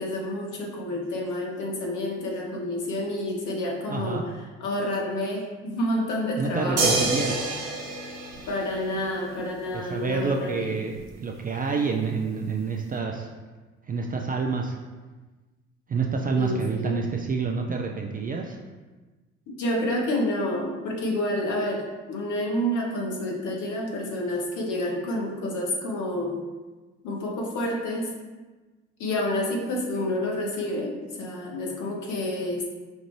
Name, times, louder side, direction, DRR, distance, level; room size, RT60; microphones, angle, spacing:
voice 1, 0.0-4.2 4.6-7.0 8.5-10.8 16.3-17.0 19.6-21.8 22.1-26.4 27.0-28.1 29.0-32.6, left 1 dB, 55° left, -1 dB, 1.1 m, -29 dB
voice 2, 3.9-4.2 6.4-7.5 9.7-13.3 13.9-14.8 15.9-18.6, right 4 dB, 25° right, 2 dB, 0.4 m, -28 dB
sound 1, 6.8-9.2 11.0-11.1, right 3 dB, 70° right, 0.9 m, -27 dB
5.3 x 2.5 x 3.1 m, 1.3 s
figure-of-eight pair, 50°, 37 cm